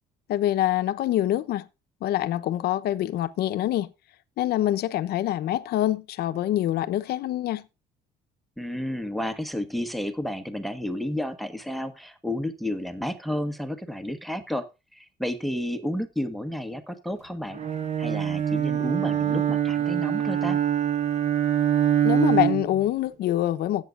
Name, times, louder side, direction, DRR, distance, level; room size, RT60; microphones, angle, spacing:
voice 1, 0.3-1.7 2.0-3.9 4.4-7.6 22.0-23.8, left 13 dB, 70° left, 0.9 m, -25 dB
voice 2, 8.6-14.7 14.9-17.6 18.0-20.6, left 1 dB, ahead, 1.3 m, -31 dB
Bowed string instrument, 17.5-22.8, right 10 dB, 40° right, 1.4 m, -24 dB
17.0 x 8.3 x 2.5 m
cardioid pair, 110°, 17 cm